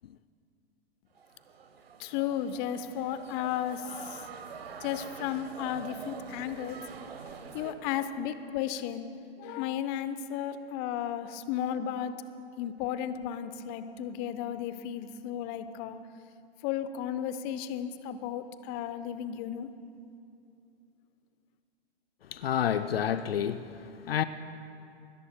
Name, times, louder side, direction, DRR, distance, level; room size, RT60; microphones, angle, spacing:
sound 1, 1.2-7.7, right 6 dB, 75° right, 1.2 m, -45 dB
voice 1, 2.0-4.3 4.8-6.8 7.5-9.1 9.4-12.1 12.6-16.0 16.6-19.7, left 10 dB, 35° left, 11 dB, 0.8 m, -34 dB
voice 2, 22.3-24.2, left 9 dB, 70° left, 11 dB, 0.6 m, -29 dB
27.5 x 21.0 x 2.2 m, 2.5 s
figure-of-eight pair, 105°, 31 cm